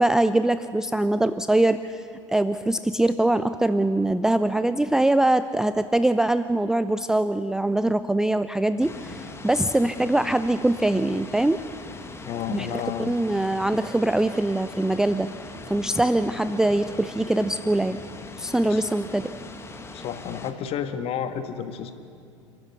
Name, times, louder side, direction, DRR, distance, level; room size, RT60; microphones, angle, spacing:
voice 1, 0.0-11.6 12.5-15.3 15.7-18.0 18.4-19.3, right 1 dB, 5° right, 12 dB, 0.4 m, -23 dB
sound 1, 8.8-20.5, left 3 dB, 15° left, 1.8 m, -41 dB
voice 2, 12.2-13.1 18.7-18.8 19.9-21.9, left 8 dB, 40° left, 9 dB, 1.6 m, -31 dB
28.5 x 13.0 x 8.2 m, 2.4 s
figure-of-eight pair, 75°, 16 cm